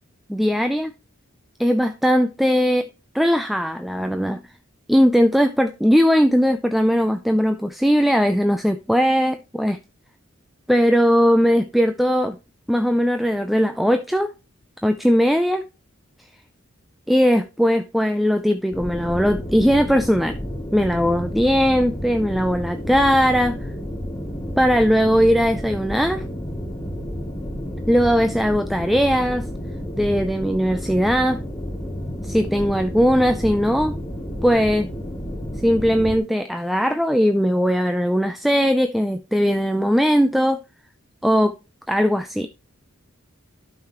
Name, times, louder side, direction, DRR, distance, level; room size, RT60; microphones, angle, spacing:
voice 1, 0.3-0.9 1.6-2.9 3.1-4.4 4.9-9.8 10.7-12.4 12.7-14.3 14.8-15.6 17.1-20.4 20.7-23.7 24.6-26.2 27.9-29.5 29.9-31.4 32.2-33.9 34.4-34.9 35.6-40.6 41.2-41.5 41.9-42.5, equal, ahead, 0.4 m, -19 dB
sound 1, 18.7-36.2, equal, 20° left, 2.6 m, -31 dB
12.0 x 5.8 x 3.0 m
head